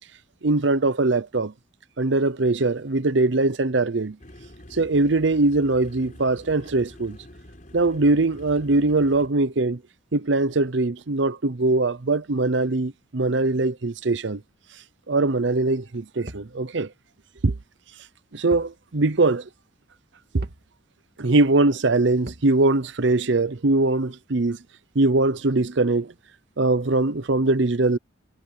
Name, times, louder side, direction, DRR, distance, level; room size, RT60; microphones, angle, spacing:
voice 1, 0.4-1.5 2.0-4.2 4.7-7.2 7.7-9.8 10.1-14.4 15.1-16.9 17.4-17.5 18.3-19.5 20.3-20.4 21.2-24.6 24.9-26.1 26.6-28.0, right 2 dB, 70° right, 0.8 m, -21 dB
sound 1, 4.2-9.3, left 1 dB, 40° left, 4.8 m, -46 dB
sound 2, 16.3-16.6 18.5-18.8 19.1-19.2 20.4-20.7 22.3-22.5, right 1 dB, 55° right, 2.7 m, -40 dB
head